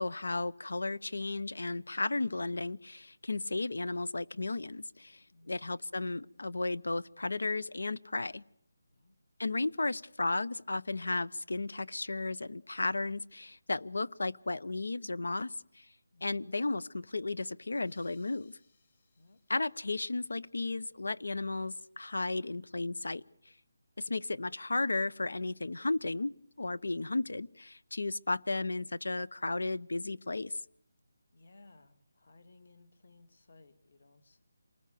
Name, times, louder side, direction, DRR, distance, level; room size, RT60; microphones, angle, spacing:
voice 1, 0.0-8.4 9.4-15.9 16.2-18.6 19.5-23.2 24.0-30.6, left 2 dB, 90° left, 17 dB, 0.9 m, -34 dB
voice 2, 5.3-5.7 8.9-9.2 16.1-16.5 19.2-19.4 31.3-34.4, left 2 dB, 50° left, 11 dB, 2.5 m, -60 dB
sound 1, 17.8-20.9, left 5 dB, 30° left, 4.8 m, -70 dB
27.5 x 20.0 x 6.9 m, 0.67 s
figure-of-eight pair, 175°, 0 cm